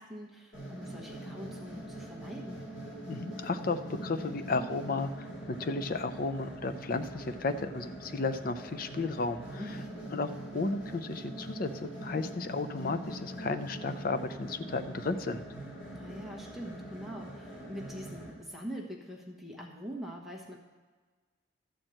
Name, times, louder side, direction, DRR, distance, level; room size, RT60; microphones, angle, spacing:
voice 1, 0.0-2.6 9.6-10.1 15.9-20.6, equal, ahead, -2 dB, 1.1 m, -43 dB
sound 1, 0.5-18.3, right 1 dB, 70° left, 3.3 m, -43 dB
voice 2, 3.1-9.6 10.1-15.4, left 3 dB, 45° left, 9 dB, 0.5 m, -33 dB
12.5 x 4.5 x 7.7 m, 1.4 s
head